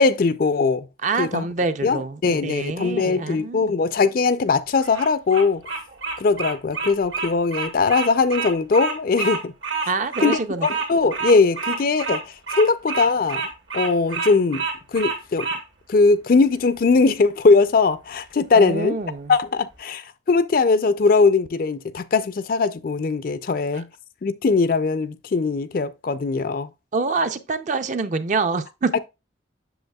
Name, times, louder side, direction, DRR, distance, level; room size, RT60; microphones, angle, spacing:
voice 1, 0.0-0.9 1.2-1.5 1.8-5.6 6.2-9.5 10.2-13.4 13.7-14.6 14.9-15.5 15.9-19.0 19.3-23.9 24.2-26.7, left 4 dB, 50° left, 0.4 m, -20 dB
voice 2, 1.0-3.7 9.9-10.7 18.5-19.3 26.9-28.9, right 4 dB, 40° right, 0.5 m, -26 dB
Bird vocalization bird call bird song, 4.8-15.6, right 4 dB, 80° right, 1.9 m, -28 dB
7.9 x 6.5 x 2.3 m
head